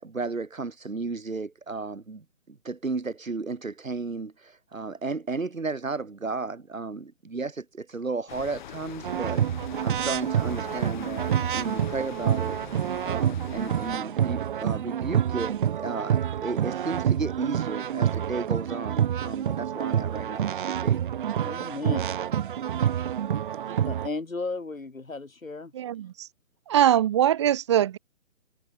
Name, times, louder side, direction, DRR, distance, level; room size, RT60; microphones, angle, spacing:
voice 1, 0.0-9.4 9.8-12.6 13.0-21.0, right 3 dB, 85° right, 4.7 m, -34 dB
sound 1, 8.3-14.0, left 11 dB, 35° left, 3.5 m, -43 dB
sound 2, 9.0-24.1, right 9 dB, 40° right, 2.5 m, -27 dB
voice 2, 21.4-22.1 23.8-25.7, left 3 dB, 90° left, 6.3 m, -34 dB
voice 3, 25.7-26.3 26.7-28.0, right 11 dB, 20° right, 0.9 m, -22 dB
figure-of-eight pair, 150°, 39 cm